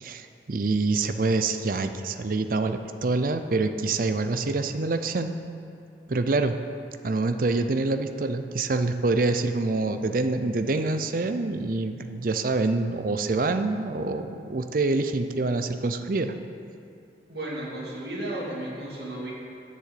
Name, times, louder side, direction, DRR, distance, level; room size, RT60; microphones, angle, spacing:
voice 1, 0.0-5.3 6.1-6.6 7.0-16.3, right 3 dB, 50° right, 8 dB, 0.5 m, -26 dB
voice 2, 17.3-19.3, right 1 dB, 65° right, -5 dB, 2.4 m, -34 dB
7.5 x 6.7 x 8.2 m, 2.5 s
head